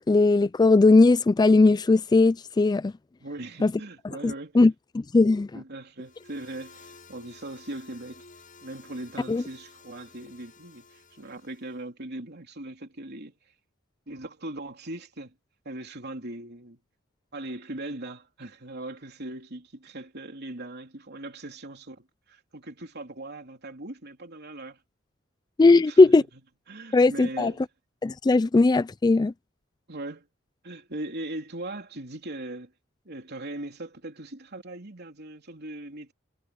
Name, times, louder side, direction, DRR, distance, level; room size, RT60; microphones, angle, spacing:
voice 1, 0.1-2.9 3.6-3.7 4.2-5.5 9.3-9.4 25.6-26.2 26.9-27.5 28.0-29.3, left 3 dB, 20° left, 0.3 m, -19 dB
voice 2, 3.2-4.6 5.5-8.3 8.6-13.3 14.1-15.3 15.7-16.8 17.3-24.8 25.6-26.1 26.7-27.7 29.9-30.3 30.6-32.7 33.1-36.1, right 1 dB, 55° right, 3.4 m, -39 dB
sound 1, 6.0-11.8, left 4 dB, 40° left, 7.3 m, -53 dB
head